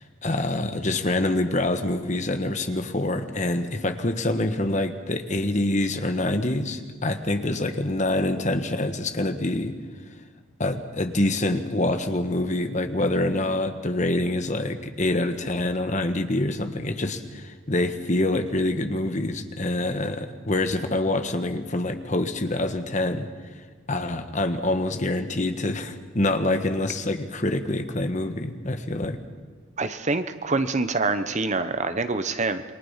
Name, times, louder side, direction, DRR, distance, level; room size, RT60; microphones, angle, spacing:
voice 1, 0.0-9.8 10.6-23.3 23.9-29.2, left 1 dB, 35° left, 8 dB, 1.4 m, -26 dB
voice 2, 29.8-32.6, right 3 dB, 35° right, 11 dB, 0.9 m, -25 dB
28.0 x 23.0 x 5.8 m, 1.5 s
head